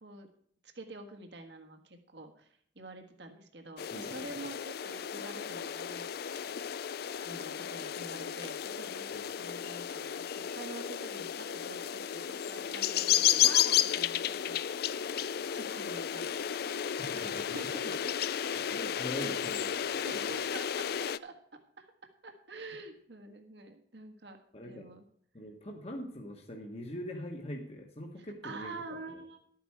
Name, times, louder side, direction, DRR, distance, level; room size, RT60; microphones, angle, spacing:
voice 1, 0.6-6.4 7.2-14.9 15.5-16.4 17.1-18.1 19.2-19.6 20.0-21.3 21.8-24.4 24.6-25.0 28.2-29.4, right 2 dB, 65° right, 5 dB, 1.6 m, -47 dB
sound 1, 3.8-21.2, left 10 dB, 55° left, 0.4 m, -33 dB
voice 2, 3.9-4.3 17.0-17.6 17.8-17.9 18.7-20.1 24.5-24.9 25.3-28.7 29.1-29.2, equal, 35° left, 1 dB, 1.4 m, -42 dB
12.0 x 9.3 x 4.7 m, 0.62 s
head